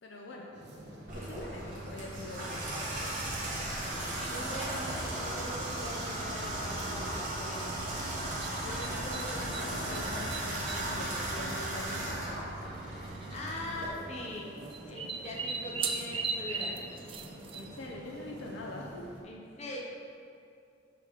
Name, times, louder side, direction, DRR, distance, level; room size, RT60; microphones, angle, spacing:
voice 1, 0.0-0.5 1.1-2.7 8.6-12.5 17.5-19.1, left 1 dB, 70° left, -1 dB, 0.6 m, -43 dB
sound 1, 0.5-19.2, right 1 dB, 60° right, 1.0 m, -49 dB
Water tap faucet / Bathtub (filling or washing), 1.1-13.9, right 1 dB, 45° right, 1.5 m, -36 dB
voice 2, 3.8-7.7 13.3-14.5 14.9-16.8 19.2-19.8, left 1 dB, 35° left, -2 dB, 0.9 m, -42 dB
sound 2, 6.8-7.1 8.4-9.7 9.9-10.9 11.8-11.9 12.1-12.2 13.2-13.5 14.7-17.9, right 4 dB, 30° right, 0.4 m, -37 dB
6.7 x 4.9 x 3.6 m, 2.5 s
head